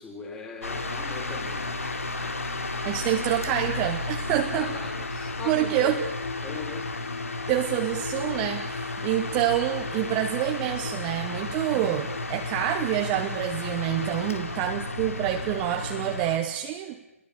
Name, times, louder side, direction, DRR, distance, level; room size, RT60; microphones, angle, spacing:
voice 1, 0.0-1.7 4.4-6.0 6.4-7.1 14.1-14.8, left 4 dB, 10° left, 3 dB, 4.2 m, -40 dB
sound 1, 0.6-16.4, left 2 dB, 70° left, 3.8 m, -33 dB
voice 2, 2.8-4.7 5.5-6.0 7.5-17.0, right 12 dB, 20° right, 5 dB, 1.2 m, -27 dB
29.5 x 22.0 x 7.1 m, 0.95 s
figure-of-eight pair, 145°, 8 cm